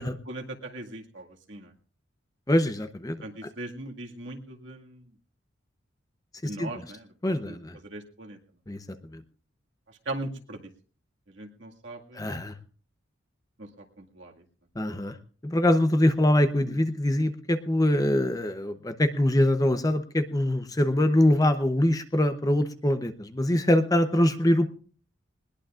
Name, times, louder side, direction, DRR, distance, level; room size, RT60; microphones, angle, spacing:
voice 1, 0.0-1.7 3.2-5.1 6.4-7.6 7.8-8.4 9.9-10.6 11.3-12.4 13.6-14.4 16.6-16.8, right 1 dB, 65° right, 2 dB, 2.0 m, -40 dB
voice 2, 2.5-3.2 6.6-6.8 7.2-7.8 8.7-8.8 9.1-9.2 12.1-12.5 14.8-15.2 15.4-24.7, left 1 dB, 20° left, 9 dB, 0.7 m, -23 dB
20.5 x 20.0 x 2.5 m, 0.43 s
head